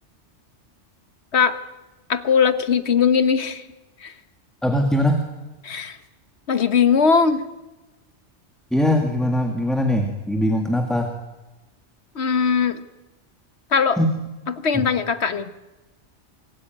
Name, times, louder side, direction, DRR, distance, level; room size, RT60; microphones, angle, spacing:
voice 1, 2.1-3.6 4.0-4.1 5.6-6.0 6.5-7.4 12.1-12.8 13.7-14.0 14.6-15.5, left 6 dB, 70° left, 11 dB, 1.5 m, -19 dB
voice 2, 4.6-5.2 8.7-11.1 14.0-14.1 14.7-14.8, left 1 dB, ahead, 3 dB, 1.8 m, -21 dB
25.0 x 15.5 x 9.3 m, 1.1 s
omnidirectional pair, 1.2 m